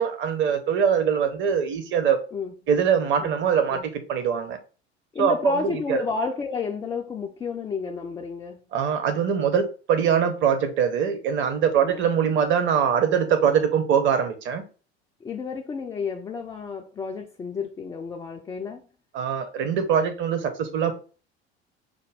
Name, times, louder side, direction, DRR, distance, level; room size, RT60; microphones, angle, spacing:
voice 1, 0.0-2.2 2.7-4.6 5.2-6.0 8.7-14.6 19.1-20.9, right 7 dB, 35° right, 0.8 m, -23 dB
voice 2, 5.1-8.6 11.8-12.0 15.2-18.9, left 4 dB, 10° left, 0.3 m, -31 dB
5.0 x 2.2 x 3.3 m
figure-of-eight pair, 70°, 33 cm